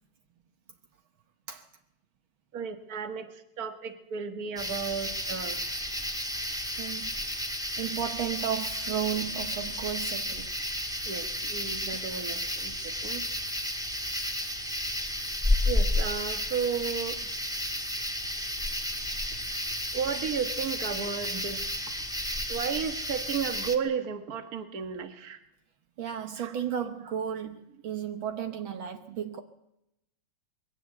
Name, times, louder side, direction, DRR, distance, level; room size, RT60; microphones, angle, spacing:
voice 1, 2.5-3.3 3.6-5.6 11.1-13.3 15.7-17.2 19.9-21.7 22.5-25.4 26.4-26.5, right 6 dB, 45° right, 1.8 m, -33 dB
sound 1, 4.6-23.8, left 1 dB, ahead, 1.3 m, -32 dB
voice 2, 6.8-7.2 7.8-10.5 11.9-12.0 26.0-27.6 27.8-29.4, right 9 dB, 70° right, 1.9 m, -33 dB
21.5 x 17.0 x 8.0 m
omnidirectional pair, 2.4 m